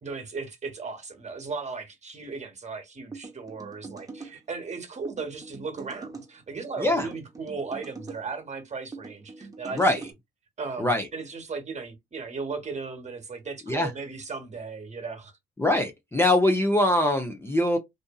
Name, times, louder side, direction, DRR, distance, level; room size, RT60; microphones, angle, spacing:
voice 1, 0.0-10.1 10.6-15.3, right 4 dB, 35° right, 1.1 m, -36 dB
sound 1, 3.1-4.4 5.1-6.3 7.0-8.2 8.9-10.1, right 4 dB, 15° right, 0.9 m, -42 dB
voice 2, 15.6-17.8, left 1 dB, 10° left, 0.6 m, -22 dB
2.7 x 2.5 x 2.3 m
cardioid pair, 90°, 20 cm